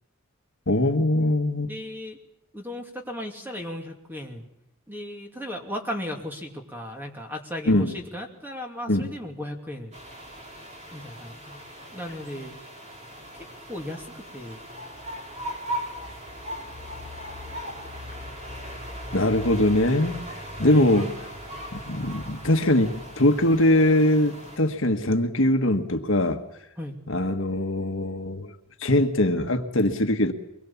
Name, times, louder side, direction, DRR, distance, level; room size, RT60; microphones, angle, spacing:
voice 1, 0.7-1.7 7.7-7.9 8.9-9.1 19.1-20.2 20.6-21.1 21.9-26.4 27.1-28.5 28.8-30.3, left 1 dB, 65° left, 6 dB, 1.4 m, -22 dB
voice 2, 1.7-2.2 2.5-4.4 4.9-9.9 10.9-11.6 11.9-12.5 13.7-14.6 20.6-21.0 26.8-27.0, left 1 dB, 10° right, 2 dB, 2.6 m, -36 dB
sound 1, 9.9-24.6, equal, 30° right, 3.7 m, -38 dB
24.0 x 21.5 x 7.2 m, 0.82 s
head